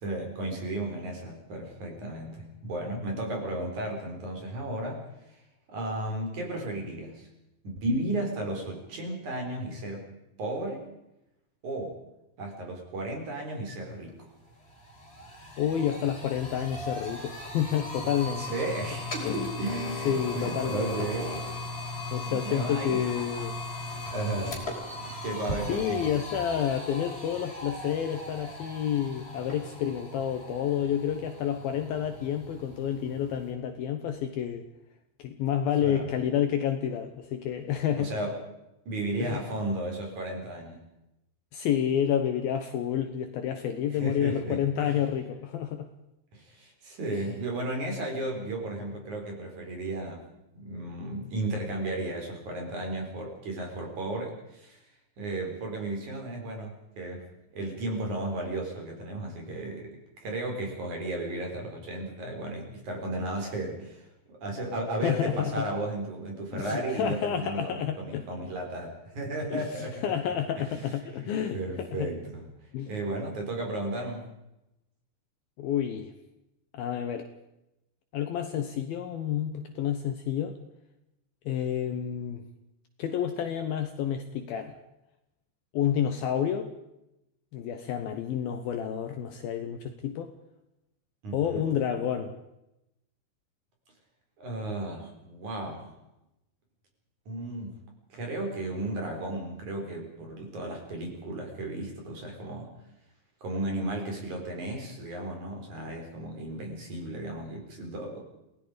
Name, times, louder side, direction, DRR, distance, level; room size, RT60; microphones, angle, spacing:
voice 1, 0.0-5.4 5.7-7.3 7.6-10.0 10.4-10.9 11.6-12.0 12.4-14.2 18.4-21.3 22.0-23.0 23.3-23.4 24.1-24.6 25.2-26.0 35.8-36.1 38.0-38.4 38.9-40.8 43.9-45.0 46.3-50.2 50.5-54.8 55.2-57.2 57.5-70.0 70.6-70.7 71.2-72.4 72.9-74.3 91.2-91.7 94.4-95.9 97.3-97.8 98.1-102.7 103.4-108.2, right 2 dB, 45° right, 1 dB, 5.3 m, -34 dB
sound 1, 14.1-14.2 14.5-33.5, left 2 dB, 15° left, 4.5 m, -38 dB
voice 2, 15.6-18.5 19.2-19.5 20.1-21.1 22.1-23.6 25.7-34.6 35.2-38.1 39.2-39.4 41.5-45.9 47.1-47.2 65.0-65.7 66.5-68.2 69.5-72.1 72.7-72.9 75.6-76.1 76.7-77.3 78.1-80.6 81.5-82.4 83.0-84.8 85.7-86.7 87.5-90.3 91.3-92.3, left 9 dB, 70° left, 7 dB, 2.5 m, -29 dB
28.0 x 18.0 x 5.1 m, 0.89 s
omnidirectional pair, 5.1 m